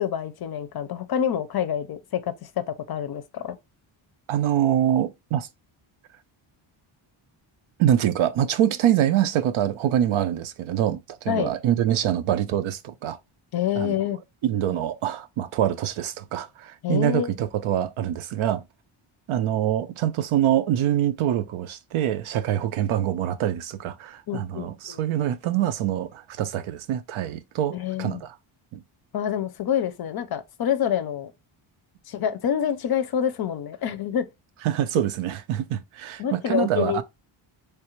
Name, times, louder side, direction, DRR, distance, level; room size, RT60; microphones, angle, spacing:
voice 1, 0.0-3.6 11.3-11.5 13.5-14.2 16.8-17.3 24.3-25.0 27.7-28.2 29.1-31.3 32.1-34.3 36.2-37.0, left 9 dB, 50° left, 0.5 m, -27 dB
voice 2, 4.3-5.5 7.8-13.2 13.8-14.0 14.4-18.6 19.3-28.3 28.7-28.8 34.6-37.0, right 11 dB, 75° right, 0.6 m, -25 dB
3.3 x 2.4 x 3.0 m
cardioid pair, 110°, 49 cm